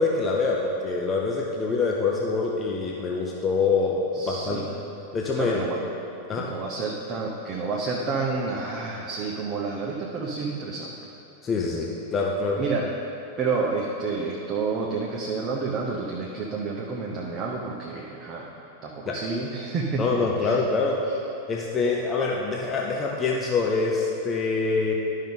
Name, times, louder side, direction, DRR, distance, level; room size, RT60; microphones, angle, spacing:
voice 1, 0.0-4.8 5.1-5.6 6.3-6.5 11.4-12.6 19.1-19.2 20.0-21.0 21.5-24.9, left 4 dB, 20° left, -2 dB, 0.8 m, -25 dB
voice 2, 4.1-4.7 5.4-5.8 6.3-10.9 12.6-12.9 13.4-18.5 18.8-20.6, right 4 dB, 30° right, -2 dB, 0.8 m, -29 dB
12.0 x 5.4 x 3.9 m, 2.7 s
figure-of-eight pair, 90°, 0 cm